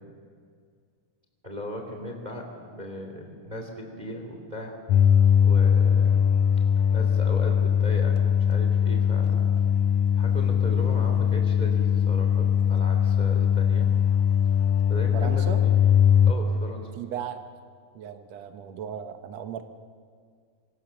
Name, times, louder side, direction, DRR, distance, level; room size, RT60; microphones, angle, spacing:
voice 1, 1.4-5.2 5.4-6.2 6.6-9.6 10.1-13.9 14.4-14.6 14.9-15.8 16.3-16.9, equal, 15° right, 3 dB, 2.7 m, -37 dB
sound 1, 4.9-16.3, left 8 dB, 90° left, 1.5 m, -21 dB
voice 2, 15.1-15.6 17.0-17.4 17.9-19.6, right 8 dB, 65° right, 8 dB, 1.8 m, -36 dB
26.0 x 26.0 x 7.1 m, 2.1 s
omnidirectional pair, 4.2 m